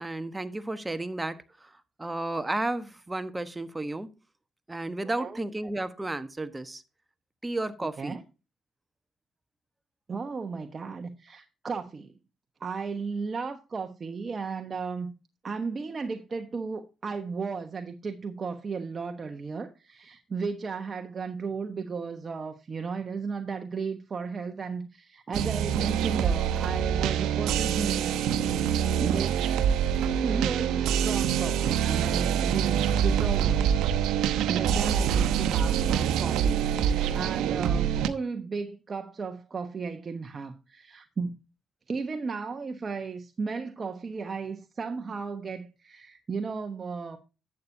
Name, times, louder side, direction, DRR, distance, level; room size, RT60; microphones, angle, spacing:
voice 1, 0.0-4.1 4.7-6.8 7.4-8.2, right 2 dB, 15° right, 1.1 m, -33 dB
voice 2, 10.1-12.2 12.6-15.1 15.4-28.1 28.4-29.5 30.2-33.7 34.5-41.4 41.9-47.2, right 5 dB, 40° right, 1.1 m, -35 dB
sound 1, 25.3-38.1, right 9 dB, 90° right, 0.8 m, -25 dB
11.5 x 8.5 x 2.7 m
cardioid pair, 90°, 0 cm